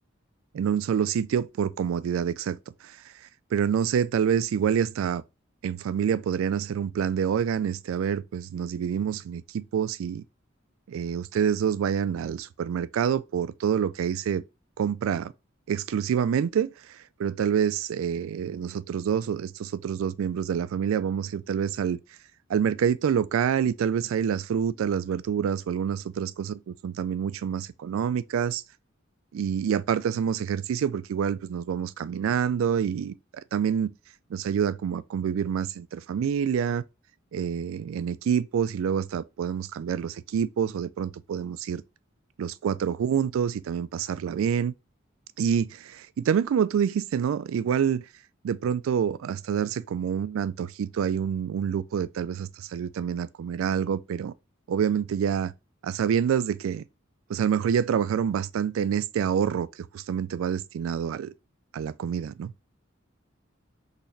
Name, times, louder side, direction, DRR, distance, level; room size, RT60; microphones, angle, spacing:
voice 1, 0.5-3.0 3.5-5.2 5.6-10.2 10.9-14.4 14.8-15.3 15.7-22.0 22.5-28.6 29.3-33.9 34.3-36.8 37.3-41.8 42.4-44.7 45.4-48.1 48.4-54.3 54.7-55.5 55.8-56.8 57.3-59.7 59.9-61.3 61.7-62.5, right 8 dB, 85° right, 0.3 m, -27 dB
4.0 x 2.9 x 2.6 m
head